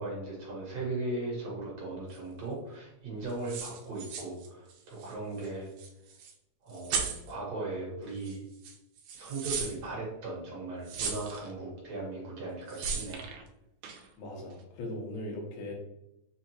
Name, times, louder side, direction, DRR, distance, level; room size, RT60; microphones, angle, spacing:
voice 1, 0.0-5.7 6.6-8.4 9.1-13.2, right 2 dB, 60° right, -4 dB, 2.1 m, -38 dB
sound 1, 2.1-2.2 3.3-5.1 5.4-5.5 5.8-6.3 6.7-7.3 8.2-8.4 8.6-9.8 10.9-11.5 12.7-13.4 13.8-14.1, right 6 dB, 90° right, 2.2 m, -36 dB
voice 2, 14.2-15.7, left 1 dB, 85° left, -1 dB, 2.6 m, -39 dB
5.9 x 2.3 x 2.9 m, 0.88 s
omnidirectional pair, 3.7 m